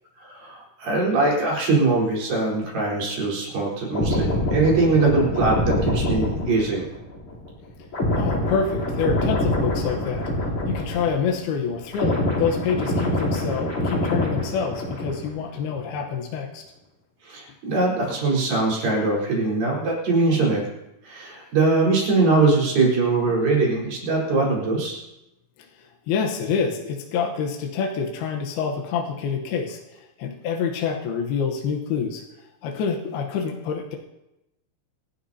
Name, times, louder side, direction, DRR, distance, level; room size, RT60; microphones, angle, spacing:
voice 1, 0.2-6.9 17.2-20.6 21.0-25.0, right 3 dB, 45° right, -4 dB, 5.7 m, -22 dB
sound 1, 3.9-11.4 11.7-15.4 15.7-15.9, left 1 dB, 30° left, 3.6 m, -25 dB
voice 2, 8.1-10.3 10.7-16.6 25.6-32.2 32.6-34.0, left 6 dB, 75° left, 1 dB, 2.4 m, -27 dB
27.0 x 11.5 x 2.8 m, 0.93 s
omnidirectional pair, 5.9 m